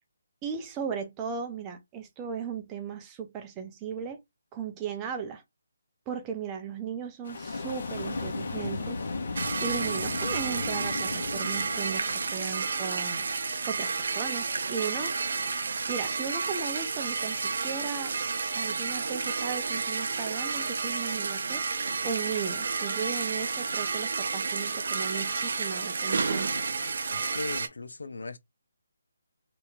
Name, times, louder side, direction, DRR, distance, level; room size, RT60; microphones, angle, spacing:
voice 1, 0.4-4.2 4.5-5.4 6.1-9.0 9.6-13.3 13.7-15.1 15.9-18.1 18.5-21.6 22.0-26.5, right 7 dB, 15° right, 0.6 m, -36 dB
sound 1, 7.2-13.9, left 3 dB, 55° left, 1.2 m, -36 dB
sound 2, 9.4-27.7, right 4 dB, 60° right, 0.6 m, -31 dB
voice 2, 27.1-28.4, left 3 dB, 85° left, 0.5 m, -38 dB
2.9 x 2.7 x 3.5 m
hypercardioid pair, 165°, 0 cm